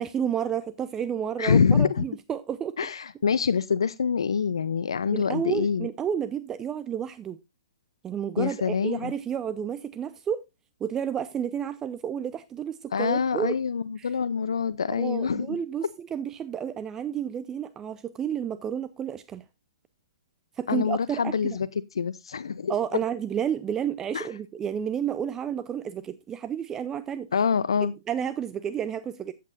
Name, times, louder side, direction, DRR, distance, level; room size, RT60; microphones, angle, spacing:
voice 1, 0.0-2.8 5.1-7.4 8.0-10.4 10.8-13.6 14.0-14.1 15.0-19.4 20.6-21.4 22.7-27.3 27.8-29.3, right 8 dB, 20° right, 0.6 m, -31 dB
voice 2, 1.4-2.0 2.8-5.9 8.4-9.1 12.9-15.9 20.7-21.7 22.0-22.8 24.1-24.3 27.3-27.9, left 6 dB, 80° left, 0.6 m, -25 dB
13.5 x 8.5 x 2.5 m
hypercardioid pair, 130°, 3 cm